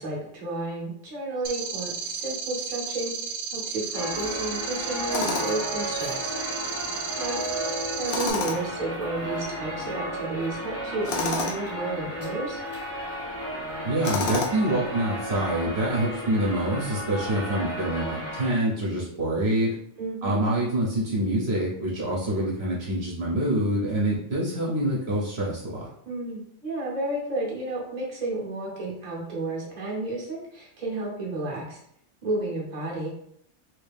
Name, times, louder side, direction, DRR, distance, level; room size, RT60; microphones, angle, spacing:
voice 1, 0.0-6.4 7.2-7.4 8.0-12.6 20.0-20.4 26.1-31.8 32.2-33.1, right 2 dB, 40° right, -3 dB, 1.0 m, -32 dB
sound 1, 1.4-8.3, right 6 dB, 90° right, 0.9 m, -33 dB
sound 2, 3.9-18.5, equal, 15° left, 0.6 m, -34 dB
Tools, 5.1-5.7 8.1-8.8 11.0-11.6 14.0-14.7, left 4 dB, 60° left, 0.8 m, -29 dB
voice 2, 13.8-19.7 20.2-25.9, right 1 dB, 60° right, -4 dB, 1.1 m, -26 dB
3.2 x 2.7 x 3.4 m, 0.71 s
omnidirectional pair, 1.2 m